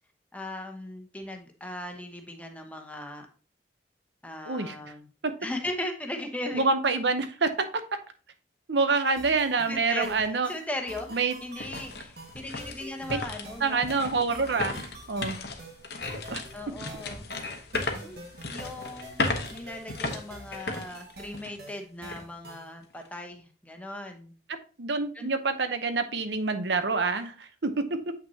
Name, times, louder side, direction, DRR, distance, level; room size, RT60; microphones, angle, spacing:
voice 1, 0.3-3.3 4.2-5.1 5.4-7.0 9.7-13.8 16.5-17.3 18.0-18.2 18.5-24.3 25.1-25.3, left 1 dB, 10° left, 3 dB, 1.0 m, -38 dB
voice 2, 6.5-7.7 8.7-10.5 11.1-11.4 13.1-13.2 13.6-14.7 15.1-15.4 16.3-16.4 24.8-28.1, right 4 dB, 75° right, 9 dB, 0.8 m, -26 dB
sound 1, 9.2-22.8, right 1 dB, 60° right, 1.6 m, -47 dB
sound 2, 10.2-10.3 10.8-21.7 22.1-22.2 22.8-23.1, left 3 dB, 60° left, 1.1 m, -36 dB
8.4 x 5.9 x 2.8 m, 0.37 s
head